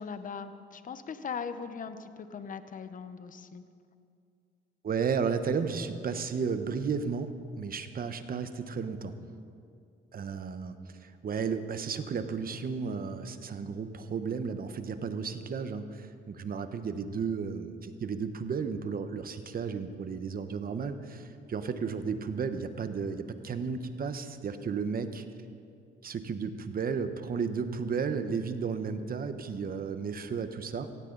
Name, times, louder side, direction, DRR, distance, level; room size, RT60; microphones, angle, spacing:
voice 1, 0.0-3.6, left 6 dB, 40° left, 11 dB, 0.8 m, -39 dB
voice 2, 4.8-9.2 10.1-25.2 26.0-30.9, right 5 dB, 45° right, 9 dB, 1.0 m, -33 dB
16.5 x 16.5 x 4.0 m, 2.3 s
cardioid pair, 90°, 20 cm